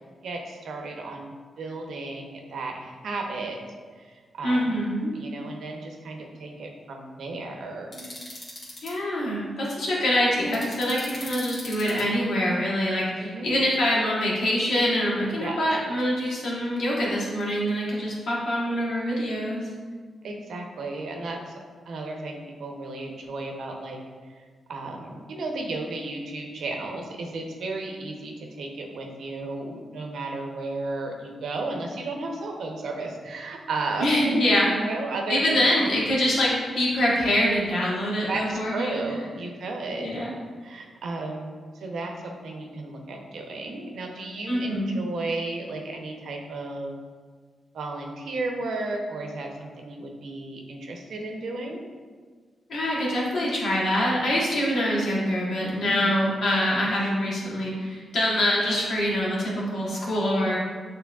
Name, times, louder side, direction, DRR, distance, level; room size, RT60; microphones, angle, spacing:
voice 1, 0.2-1.3 1.6-3.6 4.0-4.8 5.1-8.1 13.2-13.6 15.4-15.7 20.2-21.6 21.9-24.0 24.7-28.3 28.6-34.4 34.8-35.9 38.3-40.2 40.6-41.5 41.7-47.0 47.7-51.8 55.8-56.1, right 2 dB, 80° right, 2 dB, 0.7 m, -33 dB
voice 2, 4.4-5.1 8.8-19.7 34.0-34.7 35.3-39.0 40.0-40.3 44.5-45.0 52.7-60.6, left 1 dB, 80° left, -5 dB, 1.3 m, -25 dB
sound 1, 7.9-8.9 10.5-12.0, left 1 dB, 50° left, 1.5 m, -39 dB
6.9 x 3.2 x 2.3 m, 1.6 s
cardioid pair, 70°, 0 cm